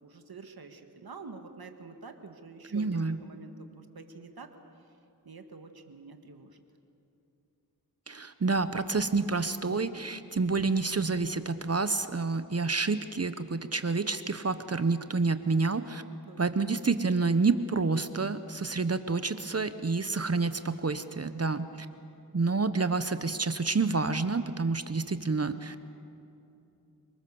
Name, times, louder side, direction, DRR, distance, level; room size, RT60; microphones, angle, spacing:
voice 1, 0.0-4.6 5.2-6.6 16.3-16.4, right 4 dB, 65° right, 6 dB, 1.9 m, -47 dB
voice 2, 2.7-3.2 8.1-16.0 16.4-21.9 22.3-25.9, right 4 dB, 40° right, 11 dB, 1.0 m, -28 dB
28.5 x 20.0 x 7.1 m, 2.8 s
cardioid pair, 50°, 39 cm